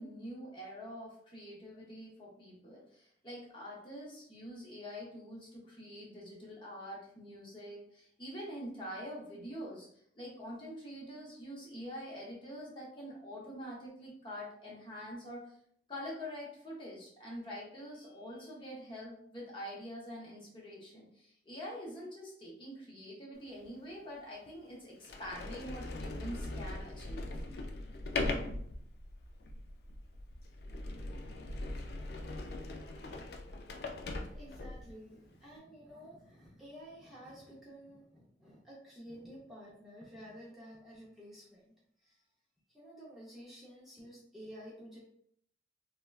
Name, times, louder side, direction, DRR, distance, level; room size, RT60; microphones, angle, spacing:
voice 1, 0.0-9.9 10.1-15.5 15.9-27.3, equal, 25° left, -4 dB, 0.7 m, -45 dB
Sliding door, 23.6-23.7 24.5-24.6 25.0-34.9, left 2 dB, 60° left, 0.3 m, -40 dB
voice 2, 34.3-41.7 42.0-42.3 42.7-45.0, equal, ahead, -8 dB, 0.5 m, -51 dB
3.3 x 2.1 x 2.3 m, 0.67 s
head